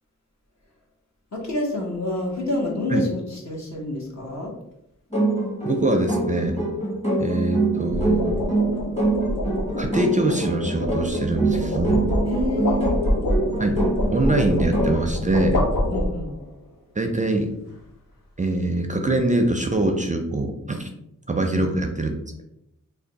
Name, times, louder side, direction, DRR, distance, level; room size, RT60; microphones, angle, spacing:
voice 1, 1.3-4.5 12.2-13.0 15.9-16.3 21.5-21.6, left 2 dB, 60° left, -1 dB, 1.1 m, -28 dB
sound 1, 2.2-2.5 7.6-16.5, left 1 dB, 90° left, 0.8 m, -26 dB
sound 2, 5.1-15.1, right 2 dB, 20° left, 1.0 m, -25 dB
voice 2, 5.6-6.6 7.2-8.4 9.8-12.1 13.6-13.8 14.1-15.7 17.0-17.5 18.4-20.9 21.3-22.4, right 2 dB, 25° right, 4 dB, 0.4 m, -23 dB
3.3 x 2.2 x 3.9 m, 0.82 s
wide cardioid pair, 70°, 32 cm